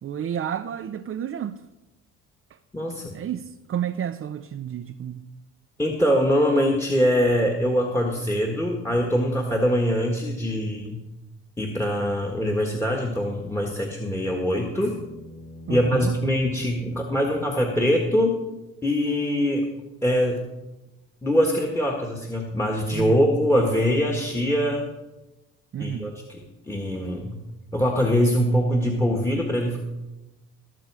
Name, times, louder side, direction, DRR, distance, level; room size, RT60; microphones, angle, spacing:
voice 1, 0.0-1.6 2.5-2.6 3.1-5.2 15.7-16.2 22.9-23.2 25.7-26.1, right 9 dB, 45° right, 0.7 m, -31 dB
voice 2, 2.7-3.1 5.8-11.0 11.6-15.0 15.7-18.4 18.8-19.7 20.0-20.4 21.2-24.8 25.8-26.4 26.7-27.4 27.7-29.8, equal, 10° left, 1.8 m, -23 dB
sound 1, 13.9-17.9 20.3-20.4, left 1 dB, 75° left, 4.7 m, -47 dB
20.0 x 7.0 x 4.9 m
cardioid pair, 90°, 31 cm